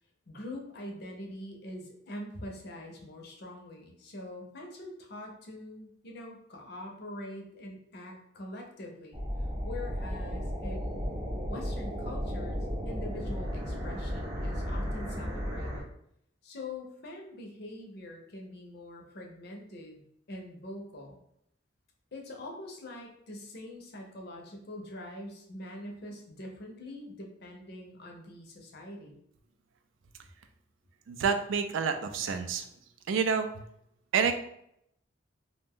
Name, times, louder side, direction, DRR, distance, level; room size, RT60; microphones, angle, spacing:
voice 1, 0.3-9.2 9.6-11.2 11.5-12.6 12.9-15.9 16.4-20.0 20.3-21.2 22.1-29.2, left 1 dB, 55° left, 1 dB, 0.6 m, -44 dB
sound 1, 9.1-15.8, equal, 20° right, 0.5 m, -34 dB
voice 2, 31.1-32.6 33.1-33.5 34.1-34.3, right 6 dB, 90° right, 8 dB, 0.3 m, -28 dB
2.5 x 2.2 x 3.5 m, 0.73 s
head